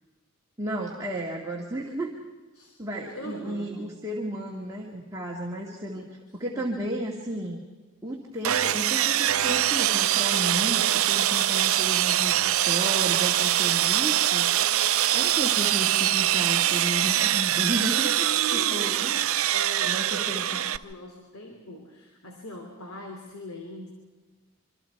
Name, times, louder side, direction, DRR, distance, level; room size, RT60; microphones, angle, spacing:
voice 1, 0.6-2.2 2.8-7.6 8.0-14.5 15.1-19.1 19.8-20.6, right 1 dB, 15° right, -2 dB, 2.2 m, -33 dB
voice 2, 3.1-3.8 6.5-6.8 18.2-23.9, equal, 80° left, 2 dB, 3.1 m, -41 dB
Sawing, 8.4-20.8, right 12 dB, 75° right, 0.7 m, -23 dB
27.0 x 25.0 x 4.7 m, 1.3 s
head